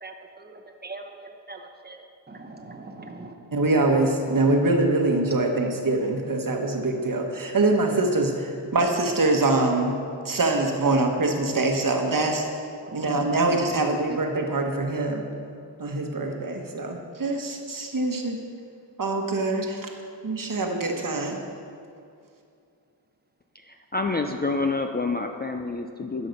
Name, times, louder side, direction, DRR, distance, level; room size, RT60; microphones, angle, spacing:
voice 1, 0.0-3.4 12.8-13.4, right 3 dB, 20° right, 4 dB, 0.9 m, -42 dB
voice 2, 3.5-10.0 10.2-12.5 12.9-15.3 15.8-18.4 19.0-19.9 20.2-21.4, right 2 dB, 45° right, 3 dB, 1.2 m, -24 dB
voice 3, 23.6-26.3, left 3 dB, 25° left, 4 dB, 0.4 m, -28 dB
12.0 x 5.7 x 5.3 m, 2.4 s
wide cardioid pair, 90°, 46 cm